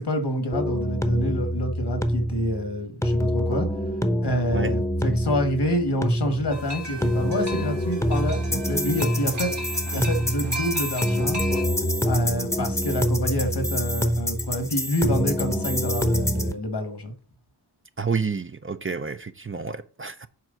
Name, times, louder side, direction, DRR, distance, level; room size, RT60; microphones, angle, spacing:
voice 1, 0.0-3.7 4.2-11.4 12.1-17.1, equal, 75° left, 1.6 m, -27 dB
sound 1, 0.5-16.5, equal, 5° left, 0.8 m, -26 dB
sound 2, 6.5-11.6, right 1 dB, 75° right, 2.0 m, -36 dB
voice 2, 18.0-20.3, right 5 dB, 30° right, 0.6 m, -29 dB
7.7 x 4.6 x 3.9 m
wide cardioid pair, 70°, 41 cm